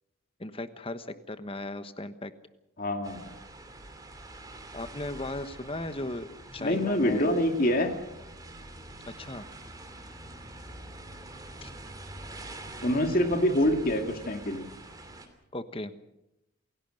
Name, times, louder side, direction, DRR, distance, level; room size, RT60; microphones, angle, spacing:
voice 1, 0.4-2.3 4.7-6.3 6.5-7.3 9.2-9.4 11.6-11.7 15.5-15.9, left 2 dB, 25° left, 11 dB, 1.2 m, -36 dB
voice 2, 2.8-3.3 6.6-8.0 12.8-14.7, left 1 dB, 45° left, 5 dB, 2.4 m, -26 dB
sound 1, 3.0-15.3, right 2 dB, 20° right, 2.9 m, -45 dB
28.0 x 17.0 x 6.6 m, 0.89 s
head